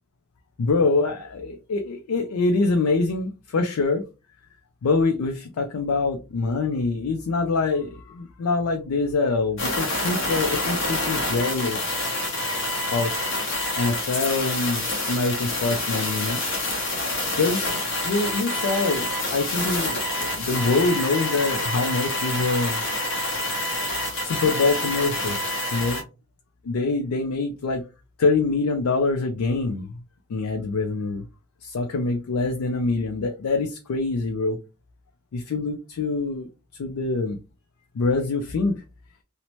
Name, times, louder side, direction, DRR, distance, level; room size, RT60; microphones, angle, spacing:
voice 1, 0.6-4.0 4.8-12.0 12.9-13.3 13.8-16.4 17.3-17.7 18.0-22.9 23.7-23.8 24.2-25.4 25.7-26.0 26.6-27.8 28.2-30.0 30.3-31.2 31.6-34.6 35.3-36.5 36.8-37.4 37.9-38.8, left 3 dB, 85° left, 0.4 m, -25 dB
sound 1, 9.6-26.0, left 1 dB, 55° left, 0.9 m, -27 dB
2.7 x 2.0 x 2.9 m
head